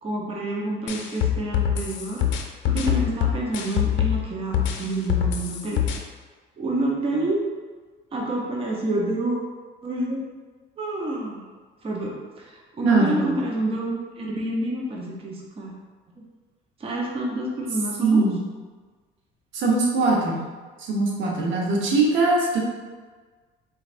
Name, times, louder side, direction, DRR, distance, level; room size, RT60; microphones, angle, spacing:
voice 1, 0.0-2.3 2.6-5.8 6.6-7.4 8.1-9.4 9.8-10.2 10.8-11.4 11.8-15.7 16.8-18.3, right 1 dB, 30° right, -2 dB, 0.7 m, -28 dB
sound 1, 0.9-4.2 4.5-6.0, left 10 dB, 65° left, 0.5 m, -24 dB
voice 2, 12.8-13.4 18.0-18.4 19.5-20.4 20.9-22.6, right 3 dB, 70° right, -2 dB, 0.9 m, -21 dB
4.0 x 3.2 x 2.5 m, 1.4 s
cardioid pair, 105°, 21 cm